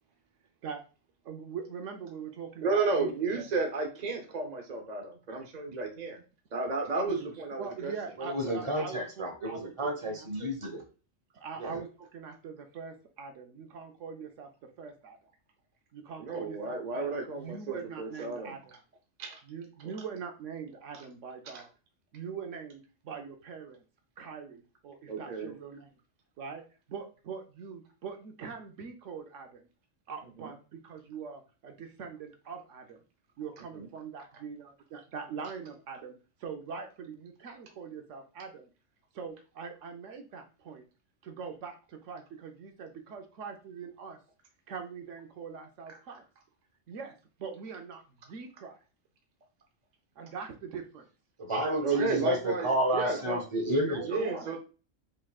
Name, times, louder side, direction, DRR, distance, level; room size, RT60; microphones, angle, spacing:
voice 1, 1.2-3.5 7.1-7.2 7.6-10.5 11.3-14.5 14.8-15.2 15.9-18.7 19.5-21.7 22.1-23.8 24.2-25.9 26.4-26.6 26.9-29.7 30.1-33.0 33.4-36.1 36.4-38.7 39.1-40.8 41.2-44.2 44.7-46.2 46.9-47.1 47.4-48.8 50.2-51.0 51.9-53.4 53.8-54.6, right 6 dB, 70° right, 5 dB, 1.0 m, -42 dB
voice 2, 2.6-6.2 6.5-7.9 16.2-18.6 19.2-19.4 21.4-21.6 25.1-25.5 30.4-30.5 33.7-33.9 51.8-53.4 54.0-54.6, right 3 dB, 40° right, 3 dB, 0.7 m, -32 dB
voice 3, 8.2-10.8 11.6-11.8 51.4-54.2, right 1 dB, 25° right, 2 dB, 1.1 m, -31 dB
5.4 x 3.6 x 2.3 m, 0.35 s
omnidirectional pair, 1.3 m